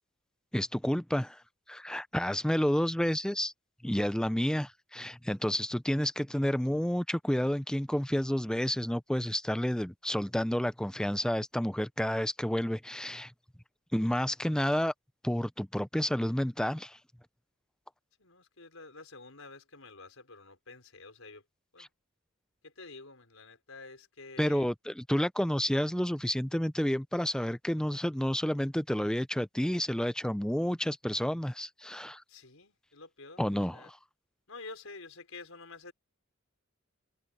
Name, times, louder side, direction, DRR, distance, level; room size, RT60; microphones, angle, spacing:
voice 1, 0.5-1.4 1.7-3.5 3.8-13.3 13.9-14.9 15.2-17.0 24.4-32.2 33.4-34.0, equal, 5° left, 0.6 m, -30 dB
voice 2, 18.2-21.4 21.7-21.9 22.6-24.7 32.3-33.4 33.7-33.9 34.5-35.9, left 3 dB, 80° left, 4.9 m, -49 dB
open air
head